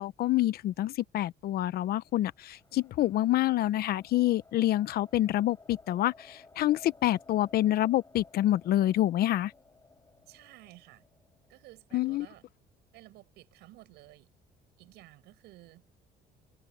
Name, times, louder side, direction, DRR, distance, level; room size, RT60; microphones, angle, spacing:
voice 1, 0.0-9.5 11.9-12.3, left 14 dB, 65° left, 0.8 m, -27 dB
sound 1, 1.9-12.3, left 3 dB, 20° left, 7.3 m, -58 dB
voice 2, 10.3-11.0 11.5-12.4 12.9-14.3 14.8-15.8, right 18 dB, 85° right, 7.2 m, -54 dB
cardioid pair, 110°, 17 cm